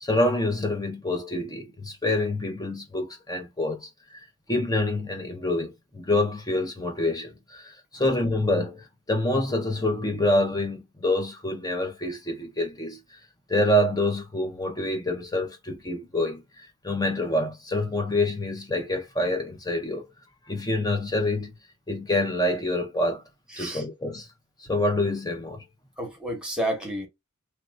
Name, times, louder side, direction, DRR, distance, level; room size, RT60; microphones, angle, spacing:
voice 1, 0.0-4.2 4.5-13.0 13.5-20.1 20.5-21.5 21.9-23.2 23.6-24.3 24.6-25.6, left 1 dB, 20° left, 0.9 m, -26 dB
voice 2, 26.0-27.1, right 1 dB, 5° right, 1.4 m, -30 dB
3.2 x 2.9 x 2.5 m
head